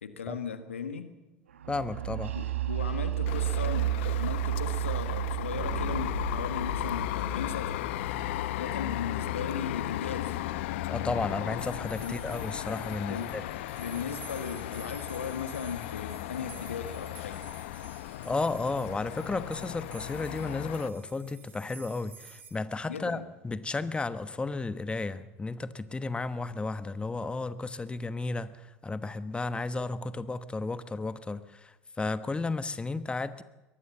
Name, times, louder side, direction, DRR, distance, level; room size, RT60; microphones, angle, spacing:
voice 1, 0.0-1.1 2.3-7.9 8.6-10.4 12.0-12.2 13.1-13.3 13.8-17.4 22.9-23.2, left 6 dB, 85° left, 9 dB, 1.6 m, -37 dB
sound 1, 1.6-9.3, right 14 dB, 80° right, 1.3 m, -33 dB
voice 2, 1.7-2.3 10.9-13.4 18.2-33.4, left 3 dB, 15° left, 12 dB, 1.2 m, -33 dB
sound 2, 3.3-20.9, left 14 dB, 70° left, 0.8 m, -36 dB
sound 3, 11.6-22.5, right 6 dB, 30° right, 5.1 m, -52 dB
23.0 x 19.0 x 7.2 m, 1.1 s
hypercardioid pair, 75°, 7 cm